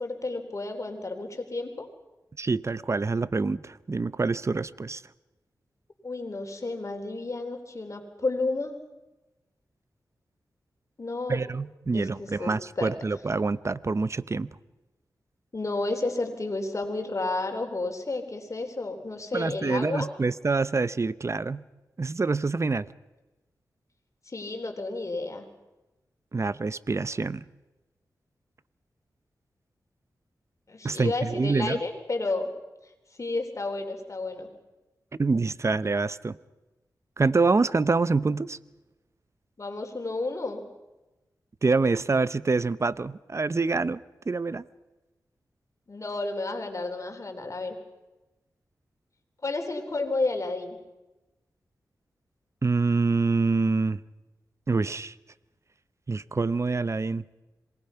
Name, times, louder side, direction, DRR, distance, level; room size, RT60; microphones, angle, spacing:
voice 1, 0.0-1.9 6.0-8.8 11.0-11.4 11.9-12.9 15.5-20.1 24.3-25.4 30.7-32.5 33.2-34.5 39.6-40.7 45.9-47.8 49.4-50.8, left 2 dB, 45° left, 5 dB, 3.9 m, -31 dB
voice 2, 2.4-5.0 11.3-14.5 19.3-21.6 22.0-22.9 26.3-27.4 30.8-31.8 35.2-36.4 37.2-38.6 41.6-44.6 52.6-54.0 54.7-55.1 56.1-57.3, right 3 dB, 40° right, 17 dB, 0.8 m, -26 dB
27.0 x 20.5 x 5.8 m, 1.1 s
cardioid pair, 50°, 7 cm